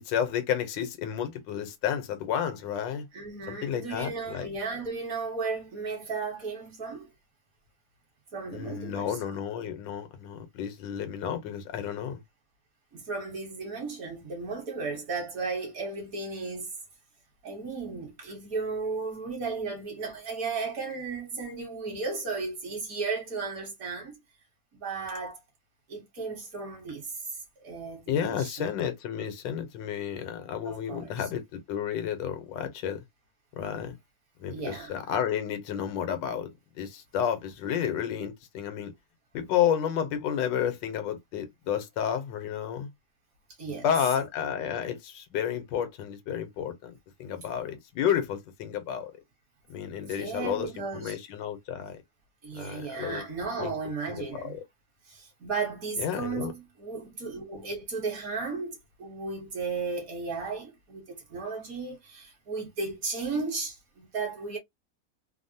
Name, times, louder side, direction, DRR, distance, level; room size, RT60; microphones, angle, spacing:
voice 1, 0.0-3.1 3.5-4.5 8.5-12.2 28.1-33.0 33.6-33.9 34.4-36.5 36.8-38.9 39.3-42.9 43.8-49.1 49.7-52.0 52.5-53.2 53.6-53.7 54.5-54.6 56.0-56.5, left 9 dB, 85° left, 1.4 m, -31 dB
voice 2, 3.1-7.1 8.3-9.2 12.9-16.7 17.4-24.2 24.7-25.4 25.9-27.4 27.6-28.7 30.6-31.3 34.5-34.9 43.6-43.9 50.0-51.2 52.4-54.6 55.1-64.6, right 4 dB, 55° right, 1.4 m, -35 dB
3.4 x 2.0 x 2.6 m
omnidirectional pair, 1.9 m